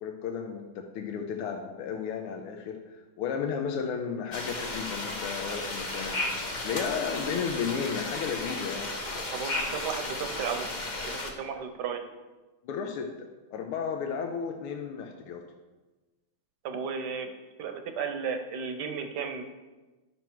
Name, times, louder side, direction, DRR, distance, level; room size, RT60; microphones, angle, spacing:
voice 1, 0.0-8.9 12.6-15.4, left 6 dB, 85° left, 3 dB, 1.6 m, -34 dB
sound 1, 4.3-11.3, left 2 dB, 65° left, 0.4 m, -34 dB
voice 2, 9.3-10.7 11.1-12.0 16.6-17.3 17.6-19.4, right 6 dB, 60° right, 7 dB, 1.2 m, -34 dB
11.0 x 6.1 x 4.5 m, 1.2 s
omnidirectional pair, 2.4 m